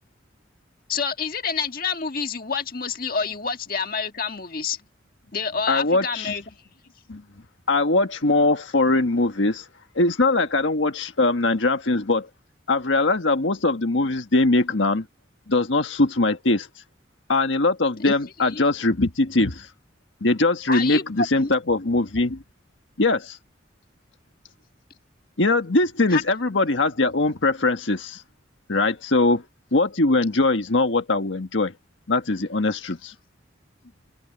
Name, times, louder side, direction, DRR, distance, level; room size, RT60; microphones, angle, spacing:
voice 1, 0.9-4.8 5.3-6.4 18.0-18.1 18.5-18.6 20.7-21.5 26.1-26.2, left 5 dB, 50° left, 1.7 m, -28 dB
voice 2, 5.7-6.3 7.1-7.2 7.7-9.6 9.9-12.3 12.7-15.0 15.5-16.7 17.3-19.7 20.2-22.4 23.0-23.4 25.4-28.2 28.7-29.4 29.7-31.7 32.1-33.1, left 2 dB, 75° left, 1.5 m, -21 dB
open air
head